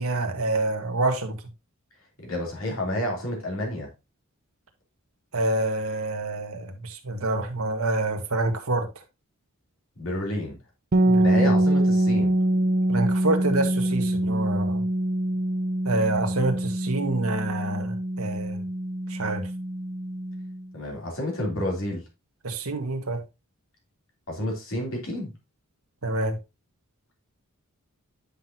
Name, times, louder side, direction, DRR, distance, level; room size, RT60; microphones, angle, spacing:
voice 1, 0.0-1.4 5.3-8.9 11.1-11.5 12.9-14.8 15.8-18.6 19.1-19.4 22.4-23.2 26.0-26.3, right 2 dB, 75° right, 1.6 m, -27 dB
voice 2, 2.2-3.9 10.0-10.6 11.2-12.3 20.7-22.0 24.3-25.3, left 1 dB, 65° left, 3.3 m, -30 dB
sound 1, 10.9-20.7, right 1 dB, 40° right, 0.6 m, -24 dB
10.0 x 5.9 x 2.8 m
head